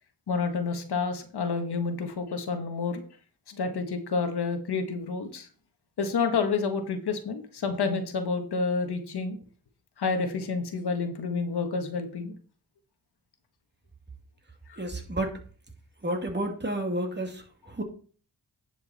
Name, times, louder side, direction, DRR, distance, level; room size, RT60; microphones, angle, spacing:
voice 1, 0.3-3.0 3.5-5.5 6.0-9.4 10.0-12.3 14.7-14.8, left 4 dB, 85° left, 6 dB, 1.6 m, -29 dB
voice 2, 14.8-15.4 16.0-17.8, right 1 dB, 25° right, 2 dB, 2.5 m, -31 dB
10.5 x 6.3 x 4.2 m, 0.41 s
cardioid pair, 65°, 38 cm